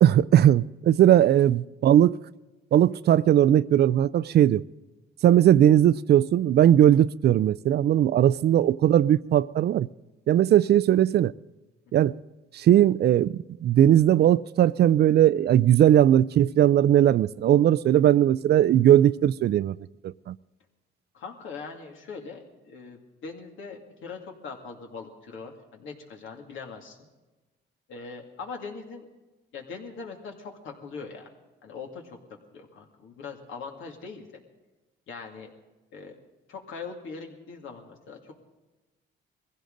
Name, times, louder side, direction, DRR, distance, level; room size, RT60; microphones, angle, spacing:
voice 1, 0.0-2.2 2.7-4.6 5.2-9.9 10.3-11.3 11.9-12.1 12.5-19.8 20.0-20.4, right 11 dB, 55° right, 0.4 m, -19 dB
voice 2, 21.1-27.0 27.9-29.0 29.5-31.3 31.6-32.2 32.5-34.3 35.1-35.5 35.9-36.2 36.5-38.3, left 5 dB, 80° left, 2.4 m, -41 dB
21.0 x 16.0 x 3.9 m
cardioid pair, 90°, 20 cm